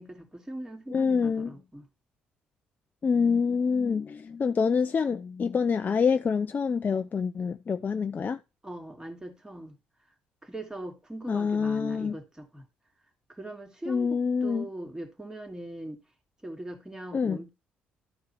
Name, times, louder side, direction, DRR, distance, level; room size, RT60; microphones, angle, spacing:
voice 1, 0.0-1.9 8.6-9.8 10.4-12.6 13.3-14.1 14.4-16.0 16.4-17.5, right 1 dB, 15° right, 2.8 m, -40 dB
voice 2, 0.9-1.5 3.0-8.4 11.3-12.2 13.9-14.7 17.1-17.4, left 5 dB, 40° left, 0.5 m, -26 dB
13.0 x 4.7 x 4.4 m
hypercardioid pair, 50°, 5 cm